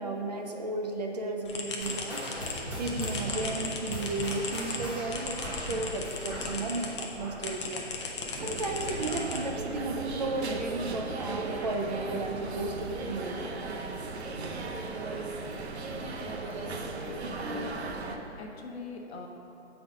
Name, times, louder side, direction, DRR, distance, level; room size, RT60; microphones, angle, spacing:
voice 1, 0.0-13.4, right 2 dB, 35° right, 2 dB, 0.4 m, -34 dB
sound 1, 1.4-7.1 7.4-9.8, left 4 dB, 25° left, 0.5 m, -37 dB
sound 2, 1.8-8.7 8.9-9.3 9.8-9.9 10.7-10.8, equal, 5° right, 0.9 m, -39 dB
sound 3, 8.4-18.2, right 3 dB, 65° right, 0.8 m, -36 dB
voice 2, 16.1-17.8 18.1-19.3, left 3 dB, 65° left, 2 dB, 1.0 m, -44 dB
7.3 x 4.0 x 5.0 m, 2.9 s
hypercardioid pair, 140°, 35 cm